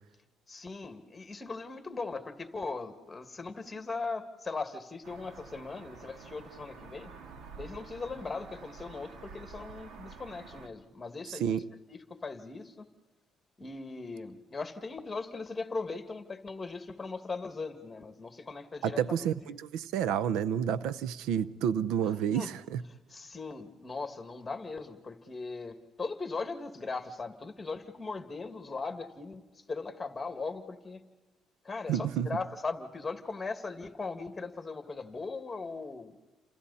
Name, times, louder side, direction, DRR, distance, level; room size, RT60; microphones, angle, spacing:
voice 1, 0.5-7.1 7.6-11.6 11.9-12.9 13.6-19.0 22.3-22.5 23.1-31.0 31.6-36.2, left 4 dB, 20° left, 2.2 m, -39 dB
sound 1, 5.0-10.7, right 5 dB, 70° right, 2.0 m, -49 dB
voice 2, 11.3-11.7 18.8-22.8 31.9-32.4, right 9 dB, 90° right, 0.7 m, -30 dB
29.5 x 27.5 x 4.2 m
cardioid pair, 105°, 0 cm